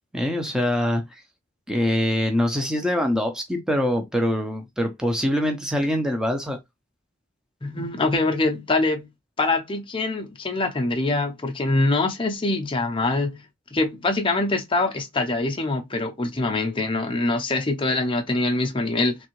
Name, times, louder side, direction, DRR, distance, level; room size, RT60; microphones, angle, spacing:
voice 1, 0.1-1.2 1.7-6.6, left 1 dB, 5° right, 0.8 m, -24 dB
voice 2, 7.6-9.1 9.4-13.4 13.7-19.2, left 2 dB, 25° left, 0.7 m, -24 dB
3.5 x 3.3 x 3.1 m
head